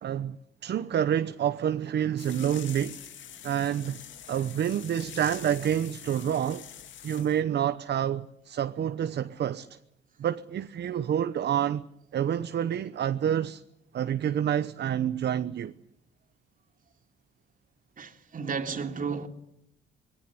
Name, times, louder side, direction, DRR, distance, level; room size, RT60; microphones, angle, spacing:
voice 1, 0.0-3.0 3.4-4.0 4.3-6.6 7.0-9.8 10.2-11.8 12.1-13.6 13.9-15.7, right 9 dB, 60° right, 1.0 m, -28 dB
sound 1, 2.2-7.4, left 9 dB, 70° left, 2.0 m, -45 dB
voice 2, 18.0-19.3, right 5 dB, 45° right, 3.3 m, -33 dB
26.5 x 20.5 x 9.8 m
cardioid pair, 90°, 20 cm